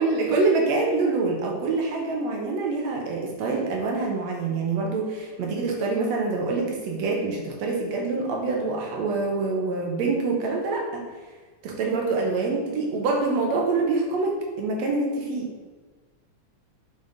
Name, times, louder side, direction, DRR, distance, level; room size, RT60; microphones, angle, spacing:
voice 1, 0.0-11.0 11.6-15.5, right 3 dB, 70° right, 0 dB, 1.9 m, -25 dB
5.4 x 5.3 x 3.8 m, 1.3 s
omnidirectional pair, 3.4 m